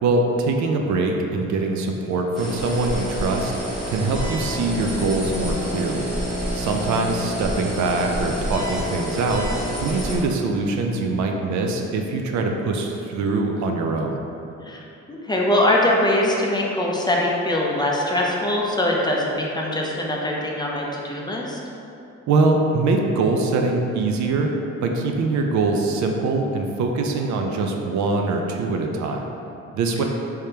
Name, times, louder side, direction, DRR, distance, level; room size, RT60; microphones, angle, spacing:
voice 1, 0.0-3.5 3.9-6.1 6.5-9.5 9.8-14.2 22.3-24.5 24.8-29.2 29.7-30.0, right 3 dB, 70° right, 2 dB, 0.5 m, -23 dB
sound 1, 2.3-10.2, equal, ahead, 1.1 m, -28 dB
voice 2, 15.1-21.6, left 1 dB, 15° left, -3 dB, 0.4 m, -22 dB
3.5 x 3.3 x 2.8 m, 2.8 s
cardioid pair, 90°, 30 cm